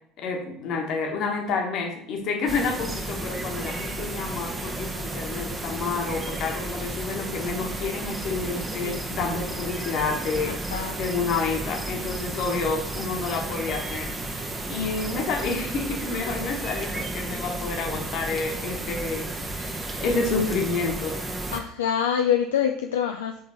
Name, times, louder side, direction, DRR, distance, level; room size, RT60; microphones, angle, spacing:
voice 1, 0.2-21.2, left 4 dB, 50° left, 2 dB, 1.3 m, -29 dB
sound 1, 2.5-21.6, right 2 dB, 20° right, 0.9 m, -33 dB
voice 2, 10.5-11.0 21.5-23.4, left 8 dB, 70° left, 4 dB, 0.3 m, -26 dB
7.6 x 3.8 x 4.2 m, 0.70 s
figure-of-eight pair, 65°, 0 cm